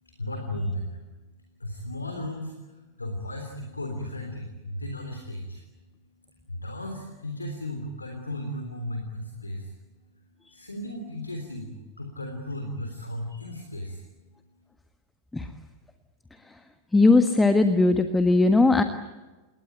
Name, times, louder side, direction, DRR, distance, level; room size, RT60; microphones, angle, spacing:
voice 1, 0.2-1.0 1.6-5.6 6.5-9.7 10.5-11.7 12.0-14.0, left 1 dB, 80° left, 4 dB, 3.5 m, -35 dB
voice 2, 16.9-18.8, left 3 dB, 10° left, 8 dB, 1.5 m, -19 dB
28.5 x 21.0 x 9.4 m, 1.2 s
figure-of-eight pair, 90°, 0 cm